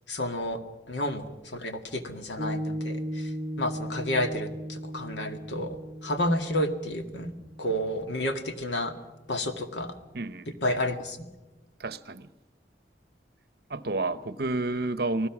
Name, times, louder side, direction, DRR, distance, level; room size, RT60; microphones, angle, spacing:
voice 1, 0.1-0.6 0.9-3.3 3.6-7.3 7.6-8.9 9.3-10.0 10.6-11.3, left 1 dB, 85° left, 2.0 m, -30 dB
Piano, 2.4-9.1, equal, 30° right, 0.8 m, -37 dB
voice 2, 10.1-10.5 11.8-12.3 13.7-15.3, right 2 dB, 60° right, 0.8 m, -30 dB
29.5 x 19.0 x 6.1 m
head